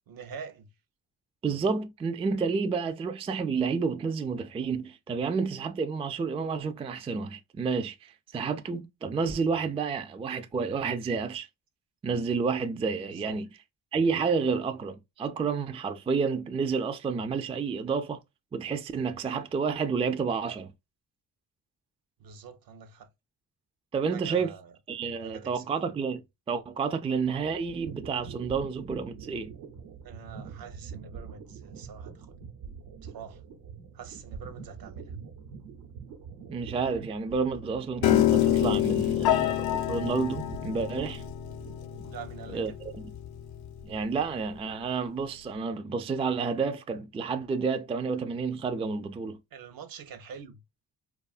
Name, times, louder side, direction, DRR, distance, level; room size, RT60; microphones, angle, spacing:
voice 1, 0.1-0.7 13.1-13.4 22.2-23.1 24.1-24.8 25.2-25.6 30.0-32.4 33.0-33.4 33.9-35.1 42.1-42.8 49.5-50.6, right 6 dB, 60° right, 0.7 m, -45 dB
voice 2, 1.4-11.5 12.0-13.5 13.9-18.2 18.5-20.7 23.9-24.5 24.9-29.5 36.5-41.2 42.5-43.1 43.8-49.4, right 5 dB, 15° right, 0.3 m, -30 dB
sound 1, 27.4-42.5, right 6 dB, 80° right, 1.0 m, -44 dB
Piano, 38.0-44.2, left 13 dB, 65° left, 0.5 m, -28 dB
2.6 x 2.4 x 2.4 m
supercardioid pair, 65°, 40 cm